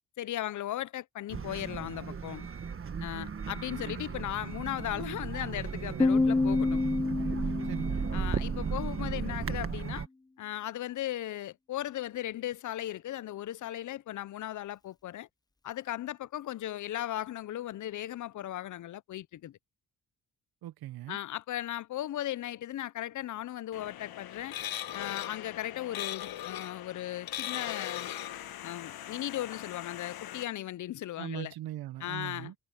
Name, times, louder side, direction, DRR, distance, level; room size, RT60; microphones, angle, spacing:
voice 1, 0.2-2.5 3.0-6.8 8.1-10.1 10.4-15.3 15.6-19.6 21.1-24.6 24.9-28.1 28.6-31.5 32.0-32.5, left 13 dB, 55° left, 0.6 m, -37 dB
sound 1, 1.3-10.1, right 6 dB, 35° right, 1.6 m, -35 dB
voice 2, 3.8-4.2 7.6-8.1 20.6-21.2 31.2-32.5, right 14 dB, 85° right, 0.9 m, -41 dB
Piano, 6.0-9.4, left 3 dB, 10° left, 0.7 m, -29 dB
sound 2, 23.7-30.4, left 12 dB, 80° left, 1.6 m, -40 dB
cardioid pair, 95°, 36 cm